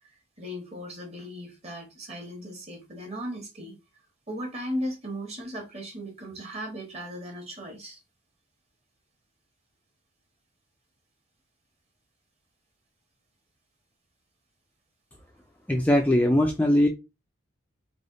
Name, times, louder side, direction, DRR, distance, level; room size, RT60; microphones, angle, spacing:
voice 1, 0.4-3.7 4.3-8.0, equal, 35° right, 1.3 m, -36 dB
voice 2, 15.7-16.9, left 1 dB, 10° left, 0.4 m, -21 dB
3.3 x 2.3 x 3.8 m
head